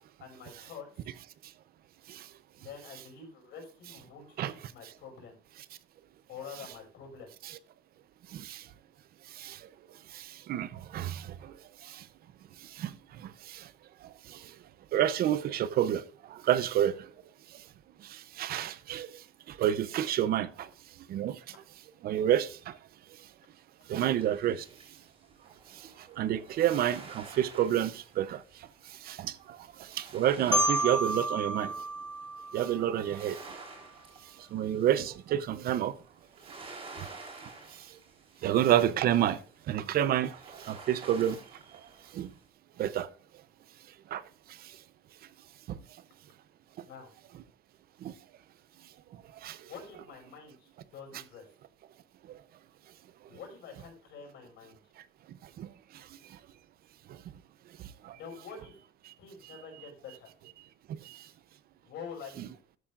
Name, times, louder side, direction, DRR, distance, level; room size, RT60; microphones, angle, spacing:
voice 1, 0.2-1.1 2.6-5.4 6.3-7.3 46.8-47.1 49.7-51.4 53.3-54.8 58.1-58.8 59.2-60.3 61.8-62.5, left 6 dB, 80° left, 5.7 m, -47 dB
voice 2, 8.3-8.7 9.3-9.7 10.1-12.1 12.6-13.7 14.0-14.6 14.9-17.1 17.5-17.6 18.0-20.7 21.1-21.4 22.0-22.8 23.9-24.7 25.7-31.8 32.5-33.4 34.4-35.9 37.0-37.1 37.7-38.0 38.4-39.4 39.7-41.4 42.1-42.3 42.8-43.1 44.1-44.2 44.5-44.8 45.7-45.8 46.8-46.9 48.0-48.1 49.4-49.7 52.3-52.4 55.6-56.4 57.1-57.2 57.8-58.2 59.1-59.2 60.9-61.3, right 11 dB, 60° right, 0.7 m, -30 dB
sound 1, 24.0-42.5, right 3 dB, 30° right, 3.8 m, -51 dB
Marimba xylophone, 30.5-33.4, right 1 dB, 5° left, 0.6 m, -31 dB
13.5 x 8.6 x 2.5 m
cardioid pair, 170°, 18 cm